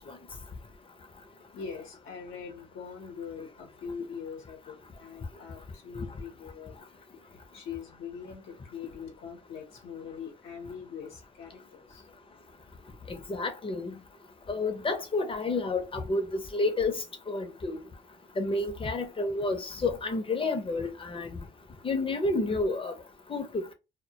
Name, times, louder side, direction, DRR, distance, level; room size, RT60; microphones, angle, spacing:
voice 1, 1.5-6.7 7.1-12.1, left 6 dB, 80° left, 0.7 m, -42 dB
voice 2, 13.1-14.0 14.5-16.9 17.3-17.8 18.4-21.5 21.8-22.9 23.3-23.7, left 3 dB, 25° left, 0.6 m, -30 dB
2.1 x 2.1 x 2.7 m
cardioid pair, 90°, 20 cm